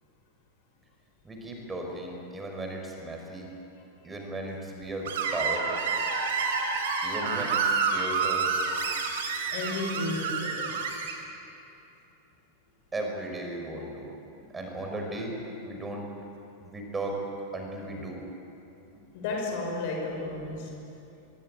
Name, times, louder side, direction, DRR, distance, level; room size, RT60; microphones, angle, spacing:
voice 1, 1.2-3.5 4.0-5.7 7.0-8.5 12.9-14.1 14.5-16.0 16.6-17.2 17.5-18.2, right 1 dB, 15° right, 1 dB, 6.0 m, -36 dB
Screech, 5.0-11.1, right 5 dB, 55° right, 4.0 m, -29 dB
voice 2, 9.5-10.8 19.1-20.7, left 2 dB, 50° left, 1 dB, 5.6 m, -33 dB
25.0 x 23.5 x 8.9 m, 2.9 s
figure-of-eight pair, 90°, 0 cm